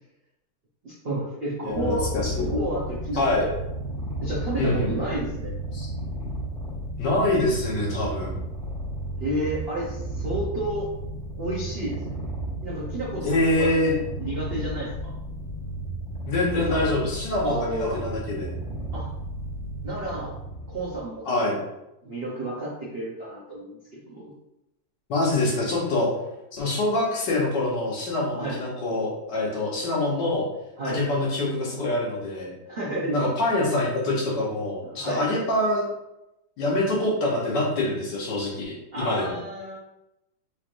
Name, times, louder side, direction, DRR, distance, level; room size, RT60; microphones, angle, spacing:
voice 1, 0.8-2.1 2.5-3.6 4.2-5.6 9.2-10.9 11.3-12.2 12.6-15.1 16.5-16.9 17.4-18.0 18.9-19.1 19.8-20.4 20.7-21.6 22.0-24.3 28.3-28.6 30.8-31.0 32.7-33.2 34.8-35.2 38.9-39.8, right 1 dB, 75° right, -6 dB, 0.5 m, -31 dB
voice 2, 1.6-2.5 3.1-3.4 4.6-5.0 5.7-5.9 7.0-8.3 13.2-13.9 16.3-18.5 21.2-21.5 25.1-26.1 26.5-30.4 30.8-32.5 33.1-35.8 36.6-39.4, left 2 dB, 65° left, -3 dB, 1.5 m, -25 dB
Purr, 1.7-21.0, right 1 dB, 40° right, 1.5 m, -33 dB
4.0 x 3.1 x 2.5 m, 0.89 s
omnidirectional pair, 2.2 m